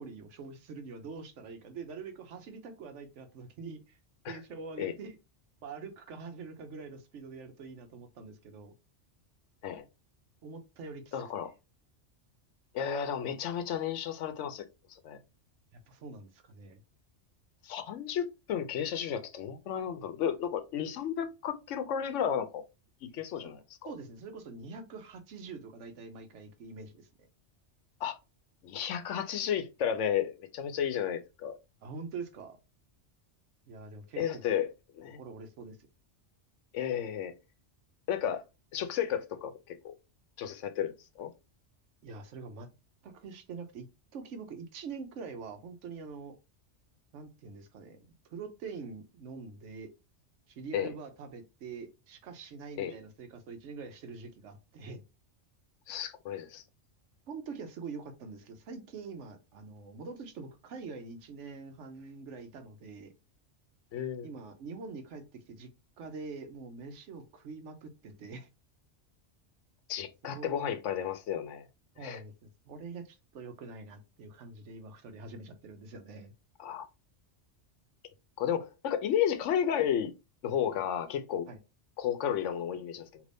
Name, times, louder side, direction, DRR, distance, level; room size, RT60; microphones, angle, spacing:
voice 1, 0.0-4.0 4.3-5.2 5.6-8.7 10.4-11.2 15.7-16.8 23.1-27.1 31.8-32.6 33.7-34.4 35.2-35.8 42.0-42.7 43.0-43.9 44.1-46.3 47.1-48.0 48.3-49.9 50.5-55.0 57.3-63.1 64.2-65.7 66.0-68.5 70.2-70.8 72.0-76.3 81.5-81.6, right 4 dB, 85° right, 1.1 m, -44 dB
voice 2, 11.1-11.5 12.7-14.6 14.9-15.2 17.6-22.6 23.1-23.6 28.0-28.2 28.6-31.6 34.2-34.7 34.9-35.2 36.7-37.3 38.1-38.4 38.7-39.9 40.4-41.3 50.7-50.9 52.8-52.9 55.9-56.6 63.9-64.3 69.9-71.6 72.0-72.2 76.6-76.8 78.4-80.1 80.4-81.5 82.0-83.2, left 9 dB, 90° left, 1.0 m, -32 dB
3.4 x 2.9 x 2.6 m
omnidirectional pair, 1.2 m